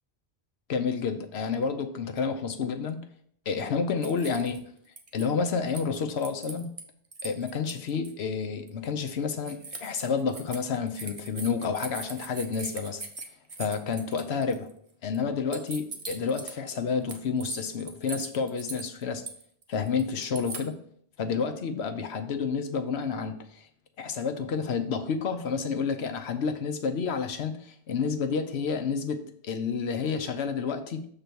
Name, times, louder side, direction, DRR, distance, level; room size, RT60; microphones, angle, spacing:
voice 1, 0.7-3.0 3.5-4.6 5.1-6.7 7.2-13.0 13.6-14.7 15.0-19.2 19.7-20.8 21.2-23.7 24.0-31.1, left 5 dB, 90° left, 7 dB, 1.0 m, -30 dB
sound 1, 4.0-4.6 5.0-6.8 7.1-8.1 8.7-8.8 9.5-14.7 15.1-15.2 15.5-16.8 17.1-20.7, right 4 dB, 35° right, 0.8 m, -40 dB
6.8 x 3.9 x 5.9 m, 0.64 s
omnidirectional pair, 1.0 m